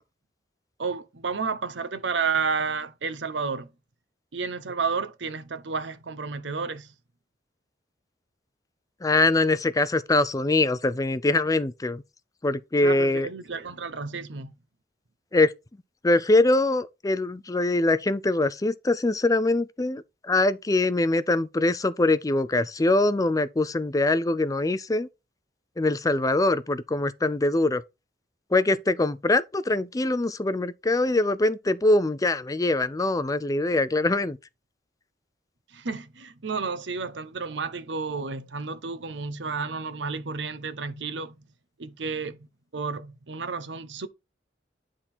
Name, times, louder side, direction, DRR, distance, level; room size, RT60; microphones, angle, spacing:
voice 1, 0.8-3.7 4.3-6.9 12.8-14.5 35.7-41.5 41.8-42.5 42.7-44.1, right 5 dB, 80° right, 0.9 m, -31 dB
voice 2, 9.0-12.0 12.4-13.3 15.3-15.5 16.0-25.1 25.8-27.8 28.5-34.4, left 2 dB, 20° left, 0.5 m, -23 dB
9.9 x 3.7 x 4.3 m
head